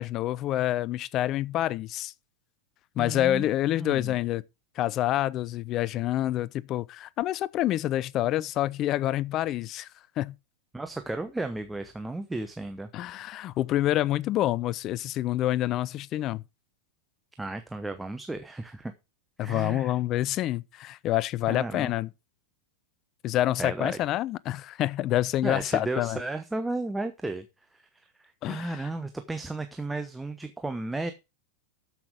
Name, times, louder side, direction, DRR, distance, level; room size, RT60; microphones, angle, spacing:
voice 1, 0.0-2.1 3.0-4.4 4.8-9.9 10.2-10.3 12.9-16.4 19.4-22.1 23.2-26.2 28.4-28.9, left 14 dB, 35° left, 0.5 m, -27 dB
voice 2, 3.0-3.4 3.8-4.1 10.7-12.9 17.4-18.9 19.4-20.0 21.5-21.9 23.6-24.0 25.4-27.5 27.7-31.1, right 2 dB, 5° right, 0.9 m, -34 dB
13.0 x 5.9 x 5.0 m
figure-of-eight pair, 90°, 0 cm